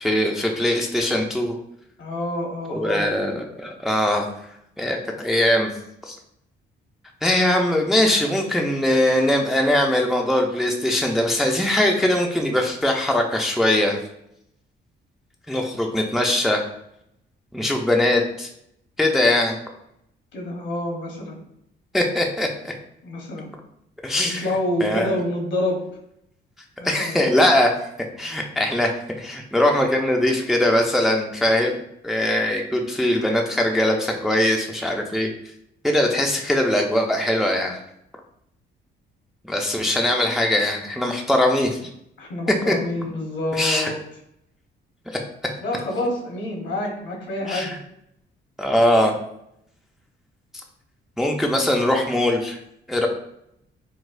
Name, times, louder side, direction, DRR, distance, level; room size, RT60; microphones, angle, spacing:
voice 1, 0.0-1.6 2.7-4.3 4.8-5.7 6.1-6.2 7.2-14.0 15.5-16.6 17.5-18.5 19.0-19.6 21.9-22.7 24.0-24.5 24.8-25.2 26.8-27.7 28.2-28.9 29.2-31.8 32.0-35.3 35.8-37.8 39.5-41.8 42.7-42.8 43.5-43.9 47.5-47.8 48.6-49.2 51.2-52.6 52.9-53.1, left 1 dB, ahead, 1 dB, 0.4 m, -21 dB
voice 2, 2.0-3.1 20.3-21.4 23.0-23.5 24.2-25.8 26.8-27.2 42.2-44.0 45.6-47.7, left 1 dB, 65° left, 1 dB, 0.9 m, -27 dB
4.0 x 2.2 x 2.4 m, 0.76 s
cardioid pair, 90°, 20 cm